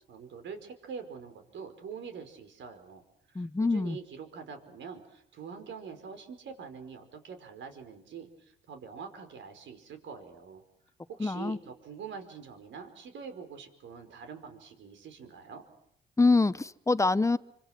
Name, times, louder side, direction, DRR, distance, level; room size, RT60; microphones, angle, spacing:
voice 1, 0.1-3.0 3.3-10.6 11.1-15.6, right 6 dB, 70° right, 7 dB, 5.2 m, -45 dB
voice 2, 3.3-4.0 11.2-11.6 16.2-17.4, left 3 dB, 15° left, 16 dB, 0.9 m, -25 dB
27.5 x 26.0 x 6.1 m, 0.74 s
cardioid pair, 90°, 20 cm